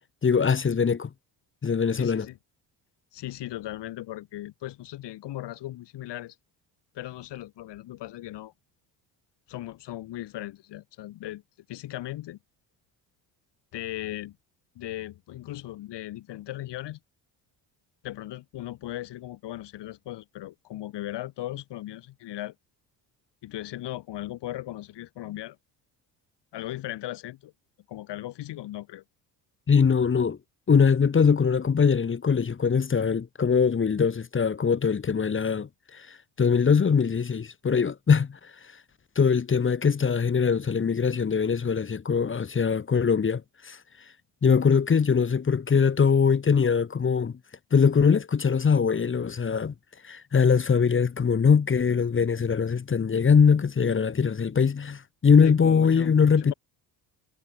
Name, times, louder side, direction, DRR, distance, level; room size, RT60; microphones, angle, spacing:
voice 1, 0.2-1.1 1.6-2.3 29.7-30.4 30.7-38.4 39.1-43.8 44.4-47.3 47.7-49.7 50.0-56.5, left 6 dB, 30° left, 1.6 m, -22 dB
voice 2, 2.0-2.4 3.1-6.4 6.9-8.5 9.5-11.4 11.7-12.4 13.7-14.4 14.8-17.0 18.0-22.5 23.4-25.6 26.5-27.5 27.9-29.0 55.4-56.5, left 15 dB, 75° left, 5.8 m, -37 dB
cardioid pair, 100°, 42 cm